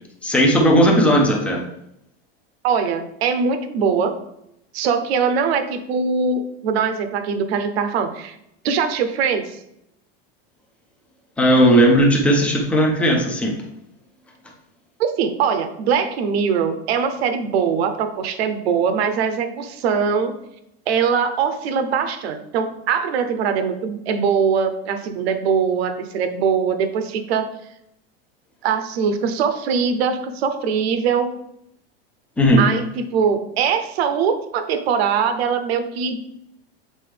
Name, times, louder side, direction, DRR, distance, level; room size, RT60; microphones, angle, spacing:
voice 1, 0.2-1.6 11.4-13.5 32.4-32.6, equal, 5° left, 0 dB, 0.4 m, -16 dB
voice 2, 2.6-4.1 4.7-8.4 8.6-9.6 15.0-20.3 20.9-27.5 28.6-31.3 32.6-36.2, right 6 dB, 75° right, 9 dB, 0.8 m, -22 dB
7.6 x 4.2 x 3.4 m, 0.81 s
supercardioid pair, 175°, 32 cm